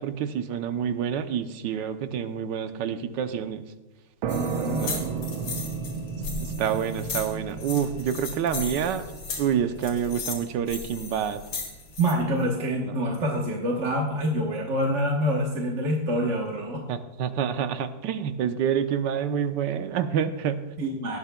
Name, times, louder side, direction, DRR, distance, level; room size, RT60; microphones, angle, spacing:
voice 1, 0.0-3.6 4.8-5.1 6.4-9.0 9.4-11.4 12.8-12.9 16.9-20.6, right 8 dB, 70° right, 9 dB, 1.3 m, -28 dB
sound 1, 4.2-11.6, right 6 dB, 85° right, 1.6 m, -34 dB
sound 2, 4.3-12.1, left 4 dB, 65° left, 2.6 m, -36 dB
voice 2, 4.3-4.8 12.0-16.8 20.8-21.2, equal, 40° right, -1 dB, 1.2 m, -26 dB
18.5 x 12.0 x 2.2 m, 1.2 s
omnidirectional pair, 2.2 m